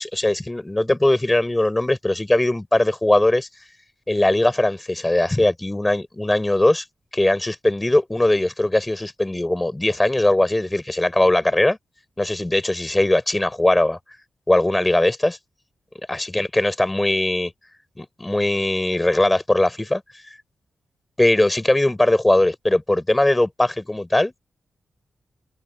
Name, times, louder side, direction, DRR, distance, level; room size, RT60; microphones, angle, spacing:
voice 1, 0.0-3.5 4.1-6.8 7.1-11.8 12.2-14.0 14.5-15.4 16.1-17.5 18.0-20.0 21.2-24.3, left 1 dB, 15° left, 5.0 m, -20 dB
wide cardioid pair, 110°, 0 cm